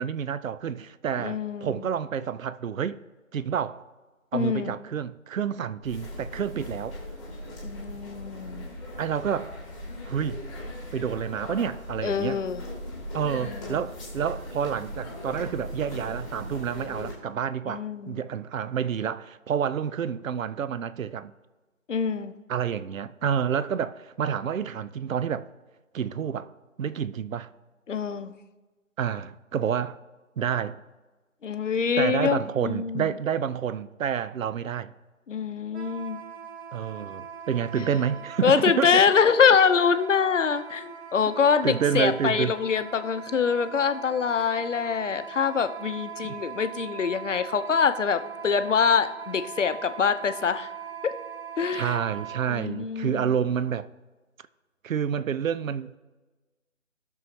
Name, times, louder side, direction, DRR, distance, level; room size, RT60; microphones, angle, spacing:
voice 1, 0.0-3.0 3.3-3.8 4.3-7.0 9.0-9.5 10.1-10.4 10.9-12.4 13.1-21.3 22.5-25.5 25.9-26.5 26.8-27.5 29.0-30.0 30.4-30.8 32.0-34.9 36.7-39.0 41.6-42.6 46.2-46.4 51.7-53.9 54.8-56.0, right 8 dB, 70° right, 0.6 m, -29 dB
voice 2, 1.2-1.8 4.3-4.7 7.6-8.7 12.0-12.6 13.3-13.8 17.7-18.2 21.9-22.3 27.9-28.3 31.4-33.1 35.3-36.2 37.8-37.9 38.4-50.7 51.6-52.0 52.5-53.3, left 6 dB, 60° left, 0.8 m, -25 dB
sound 1, 5.8-17.1, left 1 dB, ahead, 1.4 m, -38 dB
Wind instrument woodwind instrument, 35.7-52.5, right 7 dB, 50° right, 1.1 m, -41 dB
18.5 x 6.4 x 2.8 m
figure-of-eight pair, 160°, 41 cm